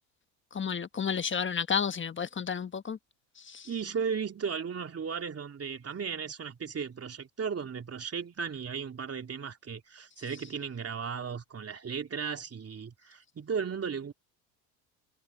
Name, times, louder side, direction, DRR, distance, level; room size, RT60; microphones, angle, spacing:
voice 1, 0.5-3.0 3.4-3.7, left 6 dB, 25° left, 1.4 m, -31 dB
voice 2, 3.6-14.1, right 6 dB, 30° right, 3.1 m, -35 dB
hypercardioid pair, 75°, 48 cm